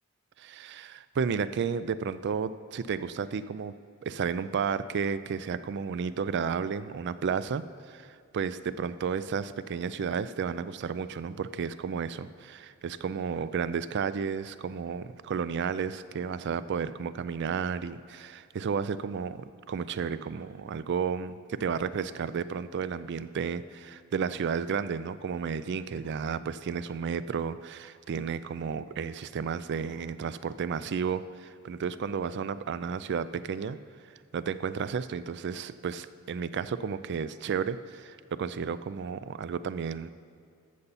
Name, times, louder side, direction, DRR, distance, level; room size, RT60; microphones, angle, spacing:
voice 1, 0.4-3.7 4.0-33.8 34.3-40.1, right 6 dB, 55° right, 15 dB, 0.4 m, -32 dB
13.5 x 6.8 x 4.1 m, 2.4 s
head